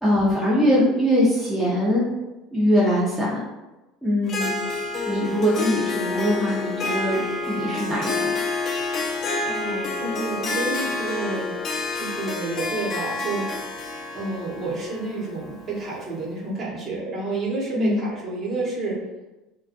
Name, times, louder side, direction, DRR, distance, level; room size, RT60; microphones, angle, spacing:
voice 1, 0.0-2.0 2.5-3.4 4.0-4.5 5.1-7.2 7.5-8.3 17.8-18.1, equal, 5° right, -8 dB, 0.6 m, -22 dB
Harp, 4.2-16.1, left 3 dB, 40° left, 0.4 m, -29 dB
voice 2, 8.8-11.6 11.9-13.5 13.7-19.0, right 2 dB, 40° right, -5 dB, 0.9 m, -30 dB
2.4 x 2.2 x 2.5 m, 1.0 s
supercardioid pair, 120°, 0 cm